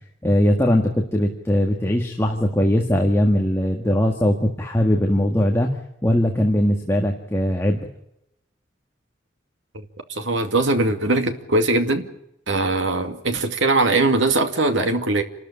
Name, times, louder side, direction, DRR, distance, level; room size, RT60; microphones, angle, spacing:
voice 1, 0.2-5.7 6.0-7.9, left 1 dB, 15° left, 2 dB, 1.8 m, -20 dB
voice 2, 10.1-12.1 12.5-15.2, right 2 dB, 85° right, 6 dB, 2.3 m, -21 dB
28.5 x 13.5 x 9.9 m, 0.83 s
head